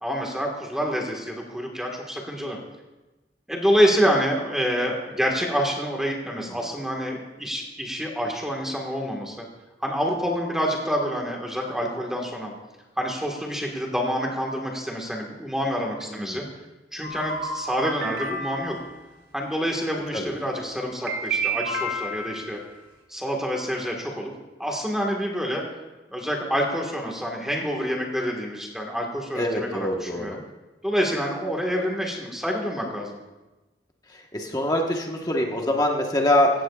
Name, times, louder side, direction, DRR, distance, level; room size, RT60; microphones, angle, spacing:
voice 1, 0.0-2.6 3.5-9.4 9.8-12.5 13.0-16.4 16.9-18.8 19.3-22.6 23.1-24.3 24.6-25.6 26.1-30.4 30.8-33.2, equal, 5° right, -1 dB, 1.6 m, -27 dB
voice 2, 16.1-16.5 20.1-20.3 29.3-30.4 34.1-36.5, left 1 dB, 20° left, 1 dB, 1.3 m, -24 dB
sound 1, 17.0-18.9 21.1-22.6, right 2 dB, 80° right, 3.3 m, -30 dB
17.0 x 15.0 x 2.4 m, 1.1 s
head